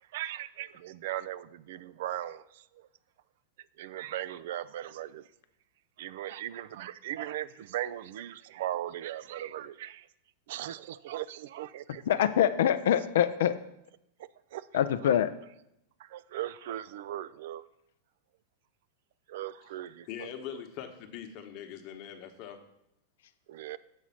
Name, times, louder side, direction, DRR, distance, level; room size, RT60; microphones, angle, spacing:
voice 1, 0.1-2.9 3.8-5.2 6.0-10.1 10.5-12.0 14.5-15.1 16.0-17.6 19.3-20.6 23.5-23.8, right 12 dB, 65° right, 17 dB, 0.3 m, -38 dB
voice 2, 12.1-13.5 14.7-15.3, left 10 dB, 70° left, 11 dB, 0.4 m, -24 dB
voice 3, 20.0-22.6, left 9 dB, 50° left, 6 dB, 1.0 m, -42 dB
7.2 x 4.9 x 5.7 m, 0.81 s
hypercardioid pair, 105°, 0 cm